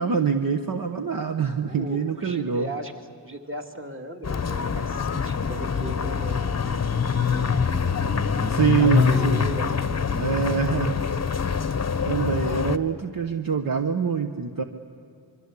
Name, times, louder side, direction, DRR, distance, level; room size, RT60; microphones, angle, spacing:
voice 1, 0.0-2.7 8.5-9.5 10.2-11.0 11.5-11.7 12.1-14.6, right 6 dB, 50° right, 6 dB, 1.2 m, -25 dB
voice 2, 1.6-2.9 3.2-6.6 7.3-7.7 8.2-9.9, right 1 dB, 25° right, 4 dB, 2.2 m, -37 dB
sound 1, 4.2-12.8, left 6 dB, 35° left, 0.9 m, -25 dB
25.0 x 23.5 x 8.4 m, 2.5 s
wide cardioid pair, 130°, 44 cm